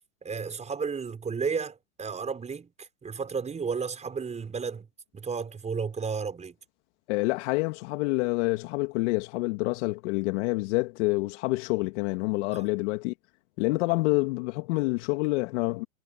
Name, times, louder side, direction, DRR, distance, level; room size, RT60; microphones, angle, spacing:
voice 1, 0.2-4.9 5.1-6.6 12.5-12.7, right 5 dB, 15° right, 6.2 m, -33 dB
voice 2, 7.1-13.1 13.6-15.8, left 24 dB, 50° left, 2.9 m, -27 dB
hypercardioid pair, 125°, 44 cm